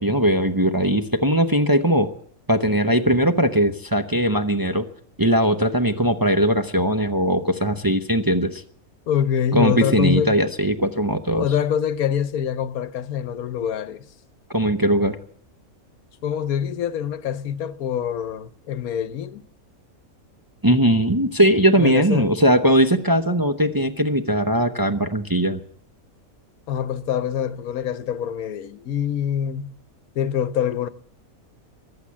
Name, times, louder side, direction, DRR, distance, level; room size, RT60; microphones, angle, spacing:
voice 1, 0.0-2.1 2.5-4.9 5.2-8.6 9.5-11.5 14.5-15.2 20.6-25.6, right 1 dB, 20° right, 0.7 m, -19 dB
voice 2, 9.1-10.4 11.3-14.0 16.2-19.4 21.8-22.4 26.7-29.7 30.1-30.9, left 9 dB, 85° left, 1.3 m, -25 dB
15.0 x 11.5 x 8.4 m
omnidirectional pair, 1.5 m